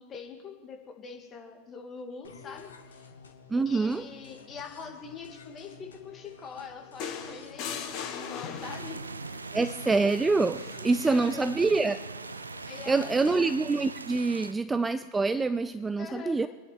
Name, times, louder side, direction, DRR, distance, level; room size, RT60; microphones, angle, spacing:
voice 1, 0.0-3.1 3.7-9.0 10.6-11.6 12.6-13.5 16.0-16.4, left 5 dB, 25° left, 2 dB, 2.2 m, -43 dB
sound 1, 2.2-12.9, left 4 dB, 70° left, 1.3 m, -52 dB
voice 2, 3.5-4.0 9.5-12.0 12.9-16.5, right 3 dB, 10° right, 13 dB, 0.4 m, -26 dB
sound 2, 7.0-9.1 10.5-10.8, left 6 dB, 40° left, 2.0 m, -38 dB
sound 3, 8.6-14.5, right 4 dB, 75° right, 0.4 m, -41 dB
24.5 x 10.5 x 4.6 m, 1.4 s
figure-of-eight pair, 90°, 0 cm